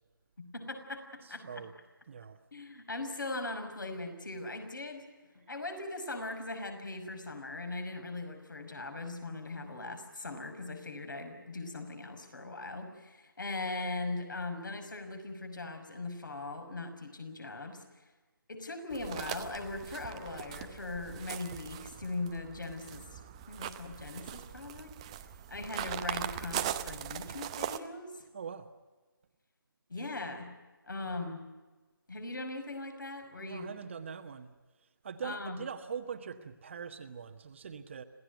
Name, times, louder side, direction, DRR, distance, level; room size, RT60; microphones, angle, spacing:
voice 1, 0.4-1.7 2.5-5.1 5.3-17.8 18.5-23.2 23.5-24.9 25.5-28.1 29.9-30.5 30.9-31.4 32.1-33.7 35.2-35.6, left 2 dB, 60° left, 6 dB, 5.8 m, -40 dB
voice 2, 1.2-1.7 2.1-2.4 28.3-28.7 33.4-34.5 35.0-38.0, right 6 dB, 35° right, 8 dB, 1.4 m, -42 dB
sound 1, 18.9-27.8, right 11 dB, 15° right, 0.7 m, -40 dB
26.5 x 17.0 x 9.2 m, 1.2 s
figure-of-eight pair, 155°, 12 cm